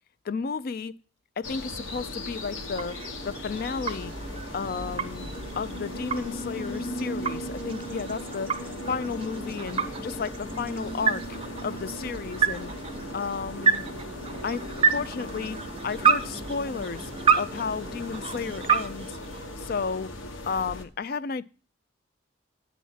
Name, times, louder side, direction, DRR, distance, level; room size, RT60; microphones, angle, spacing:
voice 1, 0.2-0.9 1.4-4.1 4.5-5.3 5.6-12.7 13.1-13.9 14.4-19.2 19.6-20.1 20.5-21.4, left 5 dB, 50° left, 0.4 m, -33 dB
sound 1, 1.4-20.8, left 1 dB, 90° left, 1.2 m, -38 dB
sound 2, 2.2-20.0, right 6 dB, 30° right, 0.5 m, -30 dB
9.3 x 4.2 x 7.2 m
head